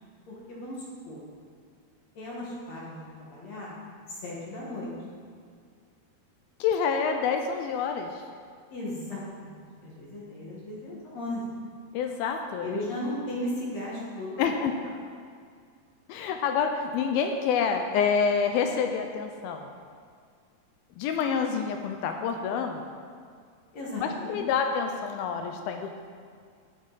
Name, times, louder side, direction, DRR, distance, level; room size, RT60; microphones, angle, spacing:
voice 1, 0.3-1.2 2.2-3.8 4.1-4.9 8.7-11.6 12.6-14.9 23.7-24.4, left 1 dB, 55° left, -5 dB, 2.1 m, -36 dB
voice 2, 6.6-8.1 11.9-12.7 14.4-14.7 16.1-19.7 21.0-22.8 24.0-25.9, left 6 dB, 85° left, 5 dB, 2.2 m, -27 dB
10.5 x 8.8 x 4.0 m, 2.2 s
omnidirectional pair, 4.7 m